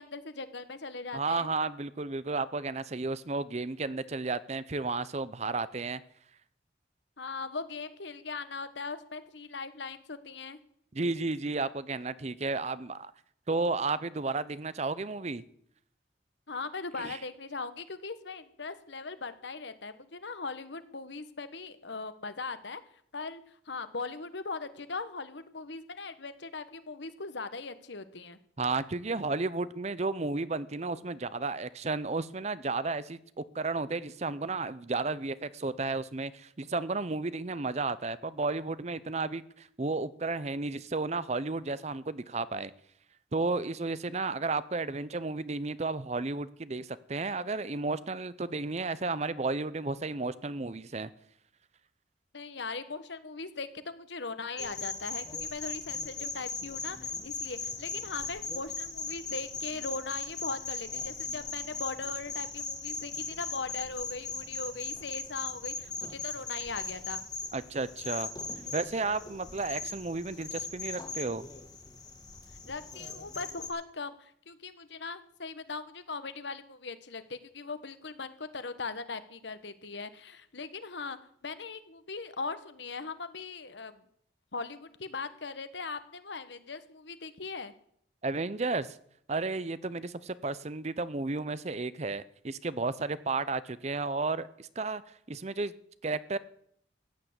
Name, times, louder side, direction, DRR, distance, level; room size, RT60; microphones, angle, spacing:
voice 1, 0.0-1.5 7.2-10.6 16.5-22.8 23.1-28.4 52.3-67.2 72.7-81.2 81.4-84.0 84.5-87.7, left 4 dB, 70° left, 12 dB, 1.2 m, -39 dB
voice 2, 1.1-6.0 10.9-13.1 13.5-15.4 17.0-17.2 28.6-42.7 43.3-51.1 67.5-68.3 68.7-71.5 88.2-89.0 89.3-95.7 96.0-96.4, right 3 dB, 35° right, 17 dB, 0.6 m, -33 dB
sound 1, 54.6-73.7, left 4 dB, 20° left, 2.2 m, -39 dB
15.0 x 9.5 x 8.0 m, 0.68 s
head